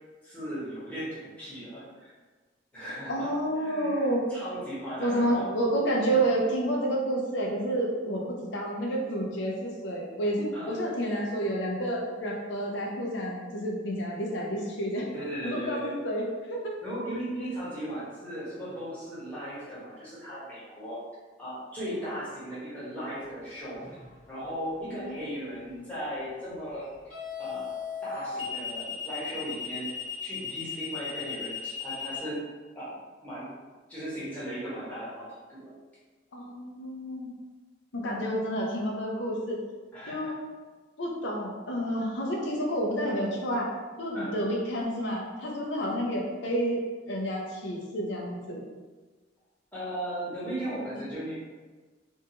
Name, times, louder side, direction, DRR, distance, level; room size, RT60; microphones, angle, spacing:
voice 1, 0.2-2.1 2.7-3.3 3.6-5.5 6.0-6.2 10.5-10.8 15.1-15.9 16.8-21.0 21.4-23.8 24.3-26.9 27.4-29.9 30.2-32.4 32.7-33.5 33.9-35.7 39.9-40.3 41.8-41.9 44.1-44.3 49.7-51.3, equal, 10° left, -11 dB, 1.0 m, -37 dB
voice 2, 3.1-4.2 5.0-15.1 15.4-16.7 24.8-25.8 36.3-37.3 37.9-39.6 40.1-40.3 41.0-43.7 44.0-48.6, right 1 dB, 70° left, -1 dB, 0.6 m, -30 dB
sound 1, 23.8-24.1 27.1-32.2, left 7 dB, 40° left, 1.0 m, -36 dB
2.6 x 2.3 x 2.7 m, 1.3 s
head